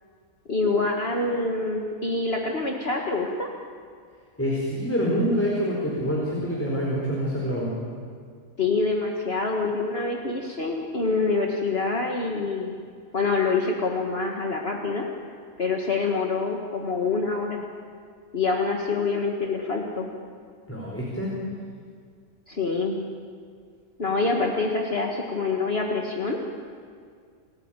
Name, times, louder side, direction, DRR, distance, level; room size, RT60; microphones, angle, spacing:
voice 1, 0.5-3.5 8.6-12.8 13.1-15.1 15.6-17.6 18.3-20.1 22.5-23.1 24.0-26.4, left 3 dB, 45° left, 0 dB, 1.9 m, -26 dB
voice 2, 4.4-7.7 20.7-21.3, equal, 10° left, -4 dB, 4.5 m, -26 dB
29.5 x 14.5 x 9.0 m, 2.1 s
omnidirectional pair, 1.5 m